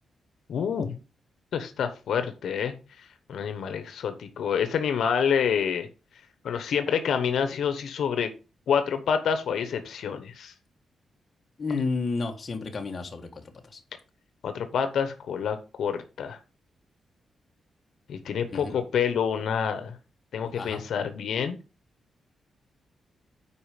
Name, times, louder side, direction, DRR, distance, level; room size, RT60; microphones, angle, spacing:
voice 1, 0.5-1.0 1.5-5.9 6.4-8.3 8.7-10.5 14.4-16.4 18.1-20.0 20.3-21.6, left 7 dB, 80° left, 1.0 m, -27 dB
voice 2, 11.6-13.8 18.5-18.7 20.5-20.8, left 4 dB, 35° left, 1.5 m, -31 dB
8.5 x 4.9 x 5.0 m
wide cardioid pair, 145°, 0 cm